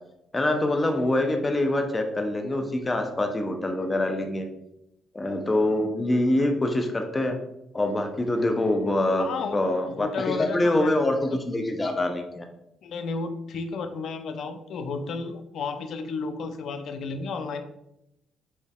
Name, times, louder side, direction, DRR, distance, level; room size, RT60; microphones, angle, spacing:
voice 1, 0.3-4.5 5.1-7.4 7.7-9.3 9.5-12.5, left 1 dB, 25° left, 4 dB, 0.6 m, -25 dB
voice 2, 9.2-9.6 9.9-10.9 12.8-17.6, left 4 dB, 70° left, 9 dB, 0.4 m, -32 dB
4.2 x 3.4 x 2.3 m, 0.85 s
supercardioid pair, 65°, 0 cm